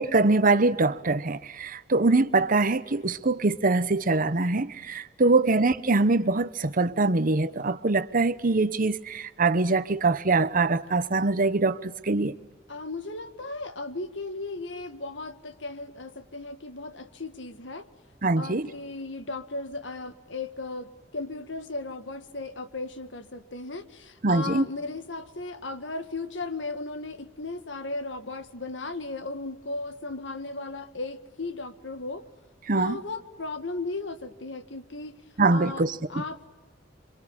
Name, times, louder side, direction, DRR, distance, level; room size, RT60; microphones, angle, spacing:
voice 1, 0.0-12.4 18.2-18.7 24.2-24.6 32.7-33.0 35.4-36.2, right 3 dB, 50° right, 1.0 m, -23 dB
voice 2, 12.7-17.8 18.4-32.2 32.8-35.2 35.5-36.5, left 3 dB, 70° left, 1.8 m, -36 dB
27.0 x 25.0 x 8.8 m
head